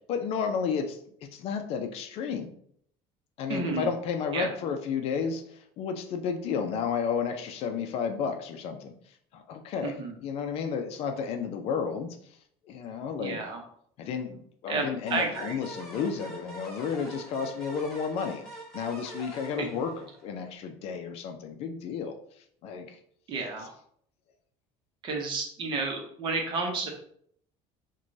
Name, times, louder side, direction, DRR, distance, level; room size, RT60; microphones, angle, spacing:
voice 1, 0.1-2.5 3.4-12.4 12.6-13.5 14.0-18.4 18.7-23.0, left 6 dB, 50° left, 6 dB, 0.5 m, -32 dB
voice 2, 3.5-3.9 4.3-4.5 9.8-10.1 13.2-13.6 14.7-15.6 19.6-19.7 23.3-23.7 25.0-26.9, right 3 dB, 35° right, 2 dB, 0.8 m, -31 dB
sound 1, 15.1-20.5, right 2 dB, ahead, 1.0 m, -44 dB
5.9 x 2.2 x 2.6 m, 0.65 s
cardioid pair, 165°, 13 cm